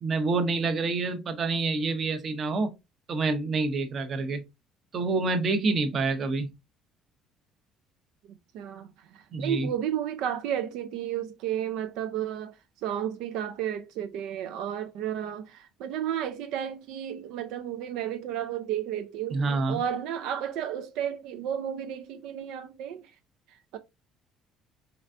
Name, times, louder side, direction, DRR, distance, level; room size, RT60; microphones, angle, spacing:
voice 1, 0.0-2.7 3.1-4.4 4.9-6.5 9.3-9.7 19.3-19.8, right 3 dB, 35° right, 0.7 m, -27 dB
voice 2, 8.3-12.5 12.8-19.4 19.7-23.0 23.7-23.8, right 10 dB, 75° right, 0.5 m, -32 dB
3.8 x 3.3 x 2.6 m
cardioid pair, 170°, 0 cm